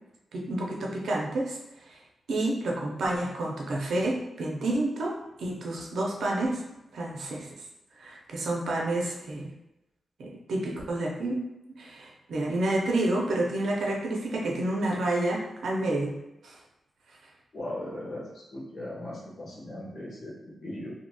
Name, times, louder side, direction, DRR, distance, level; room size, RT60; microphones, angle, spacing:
voice 1, 0.3-1.6 1.9-2.0 2.3-5.1 5.4-6.6 6.9-7.5 8.0-9.5 10.2-11.4 11.8-16.1 16.4-16.6, right 1 dB, 80° right, -2 dB, 0.6 m, -29 dB
voice 2, 17.5-20.9, left 1 dB, 60° left, -6 dB, 1.0 m, -38 dB
2.8 x 2.7 x 2.2 m, 0.94 s
wide cardioid pair, 100°, 0 cm